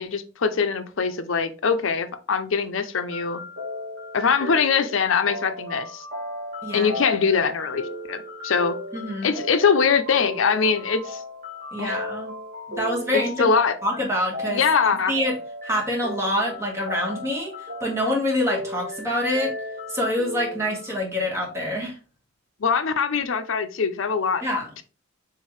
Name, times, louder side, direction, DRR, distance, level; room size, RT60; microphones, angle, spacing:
voice 1, 0.0-3.4 4.1-6.1 6.7-8.8 9.2-11.2 11.8-12.0 13.1-13.8 14.5-15.1 22.6-24.4 24.8-24.9, left 5 dB, 70° left, 0.6 m, -22 dB
sound 1, 3.1-21.0, left 1 dB, 45° right, 1.7 m, -35 dB
voice 2, 8.9-9.3 11.7-12.3 12.8-13.5 13.8-14.6 15.1-15.3 15.6-17.5 17.8-19.5 19.9-22.0 24.4-24.7, left 1 dB, 15° right, 1.5 m, -26 dB
4.6 x 3.7 x 3.1 m
head